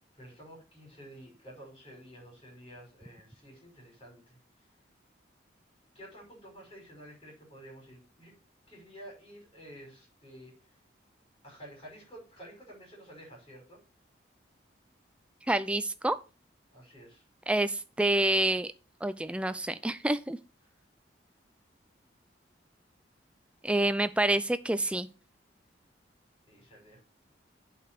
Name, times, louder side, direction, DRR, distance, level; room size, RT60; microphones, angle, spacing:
voice 1, 0.1-4.4 5.9-8.3 8.7-10.8 11.4-13.8 16.7-17.2 20.6-20.7 26.5-27.0, equal, 30° left, -1 dB, 5.3 m, -51 dB
voice 2, 15.5-16.2 17.5-18.7 19.0-20.4 23.6-25.1, right 1 dB, 5° right, 12 dB, 0.4 m, -27 dB
8.1 x 4.9 x 5.9 m, 0.33 s
head